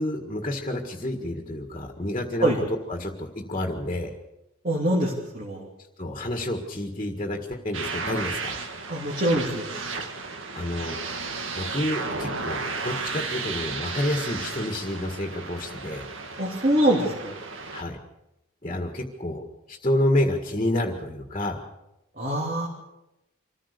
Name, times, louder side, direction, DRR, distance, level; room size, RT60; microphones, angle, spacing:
voice 1, 0.0-2.5 2.9-4.1 6.0-8.6 10.6-11.0 11.6-16.1 17.7-18.0 18.6-21.6, left 1 dB, 30° left, 3 dB, 1.8 m, -29 dB
voice 2, 4.6-5.7 8.9-9.7 16.4-17.4 22.2-22.7, right 1 dB, 40° right, -3 dB, 3.1 m, -24 dB
sound 1, 7.7-17.8, right 4 dB, 65° right, 1.8 m, -33 dB
25.5 x 15.0 x 6.8 m, 0.93 s
head